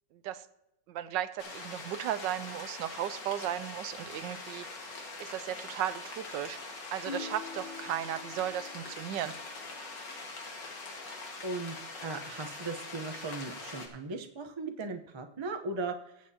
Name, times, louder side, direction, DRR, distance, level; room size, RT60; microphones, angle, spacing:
voice 1, 0.1-0.5 0.9-4.7 5.2-6.6 6.9-9.3, right 11 dB, 75° right, 14 dB, 1.2 m, -35 dB
sound 1, 1.4-13.9, left 3 dB, 70° left, 2.5 m, -43 dB
sound 2, 7.1-10.7 13.2-13.7, left 5 dB, 85° left, 1.7 m, -47 dB
voice 2, 11.4-11.8 12.0-16.3, right 3 dB, 30° right, 4 dB, 0.5 m, -38 dB
21.0 x 7.6 x 2.8 m, 0.87 s
omnidirectional pair, 2.0 m